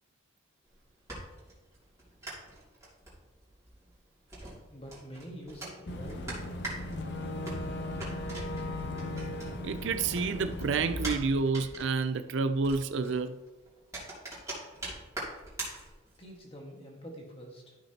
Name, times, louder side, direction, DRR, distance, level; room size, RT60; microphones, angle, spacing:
sound 1, 0.7-9.8 10.1-16.4, right 2 dB, 15° right, 2.7 m, -43 dB
voice 1, 4.7-6.4 16.2-17.8, equal, 25° left, 0 dB, 1.6 m, -46 dB
Boat Water vehicle / Engine, 5.9-11.2, left 1 dB, 50° left, 0.8 m, -37 dB
voice 2, 9.6-13.4, right 4 dB, 55° right, 9 dB, 0.4 m, -29 dB
12.5 x 5.8 x 2.9 m, 1.2 s
head